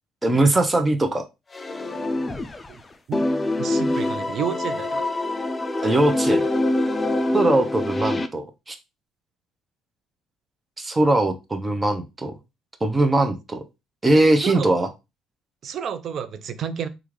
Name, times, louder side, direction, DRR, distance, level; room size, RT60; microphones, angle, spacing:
voice 1, 0.2-1.2 5.8-6.4 7.3-8.8 10.8-12.3 12.8-13.6 14.0-14.9, right 2 dB, 20° right, 0.7 m, -20 dB
sound 1, 1.5-2.8 3.1-8.3, left 2 dB, 25° left, 0.4 m, -25 dB
voice 2, 3.6-5.1 14.4-14.7 15.6-16.9, right 8 dB, 55° right, 0.5 m, -30 dB
3.5 x 2.4 x 3.1 m
supercardioid pair, 70°, 0 cm